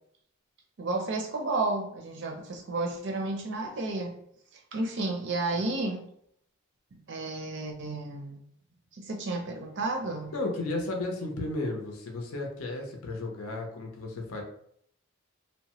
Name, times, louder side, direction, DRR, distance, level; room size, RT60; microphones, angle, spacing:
voice 1, 0.8-4.1 4.7-6.1 7.1-8.4 8.9-10.3, right 2 dB, 55° right, 2 dB, 0.5 m, -32 dB
voice 2, 10.3-14.4, left 2 dB, 80° left, 1 dB, 0.6 m, -33 dB
2.9 x 2.1 x 2.9 m, 0.67 s
head